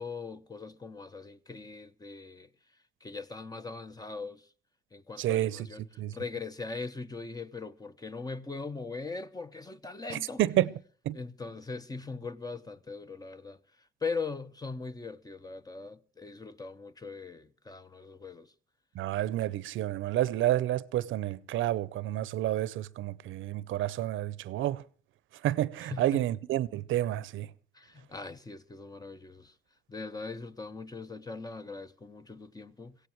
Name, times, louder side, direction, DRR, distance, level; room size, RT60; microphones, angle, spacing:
voice 1, 0.0-2.5 3.0-4.4 4.9-5.8 6.1-10.5 11.1-13.6 14.0-18.5 25.8-26.3 27.7-29.5 29.9-33.0, left 4 dB, 20° left, 1.0 m, -40 dB
voice 2, 5.2-5.6 6.0-6.1 10.1-10.7 11.1-11.2 19.0-24.8 25.4-27.5, right 13 dB, 80° right, 0.7 m, -29 dB
23.5 x 16.5 x 3.1 m
cardioid pair, 90°, 20 cm